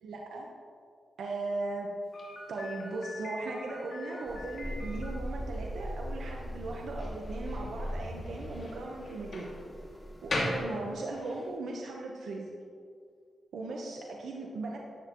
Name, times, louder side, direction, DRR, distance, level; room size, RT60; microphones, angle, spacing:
voice 1, 0.0-0.5 1.2-1.9 2.5-9.5 10.2-12.5 13.5-14.8, right 2 dB, 90° right, -1 dB, 1.1 m, -38 dB
Slam, 2.1-11.5, left 1 dB, 50° left, 2.5 m, -40 dB
sound 1, 4.3-10.6, equal, 5° left, 2.0 m, -40 dB
13.0 x 10.0 x 3.1 m, 2.2 s
wide cardioid pair, 110°, 0 cm